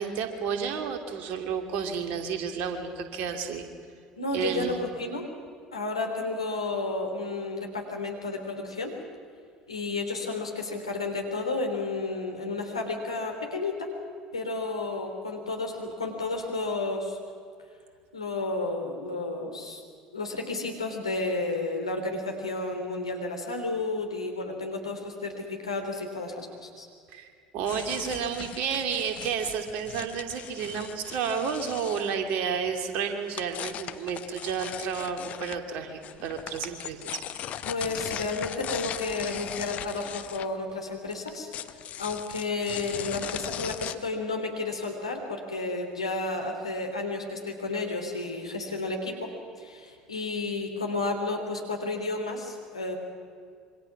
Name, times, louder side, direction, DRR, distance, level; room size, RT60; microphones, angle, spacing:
voice 1, 0.0-3.7 4.3-4.8 27.1-37.6, right 6 dB, 55° right, 5 dB, 2.9 m, -31 dB
voice 2, 4.1-5.3 5.7-8.9 9.7-13.9 14.3-17.2 18.1-19.8 20.1-26.9 37.6-41.5 42.0-49.3 49.6-52.9, left 3 dB, 85° left, 2 dB, 3.3 m, -32 dB
sound 1, 27.7-32.2 33.2-35.6 36.0-44.0, left 11 dB, 50° left, 1.0 m, -38 dB
26.5 x 24.0 x 6.1 m, 2.2 s
figure-of-eight pair, 60°, 3 cm